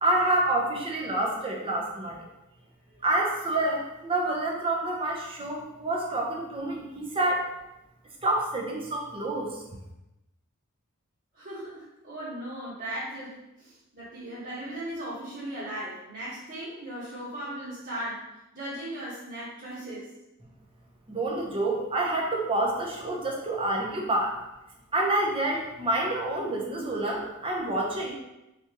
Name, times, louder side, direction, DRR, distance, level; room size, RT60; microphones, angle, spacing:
voice 1, 0.0-2.2 3.0-7.5 8.2-9.6 21.1-24.3 24.9-28.1, right 2 dB, 25° right, -1 dB, 0.8 m, -28 dB
voice 2, 11.3-18.3 18.5-20.1, right 1 dB, 45° right, -13 dB, 1.4 m, -37 dB
4.3 x 3.5 x 3.0 m, 0.93 s
head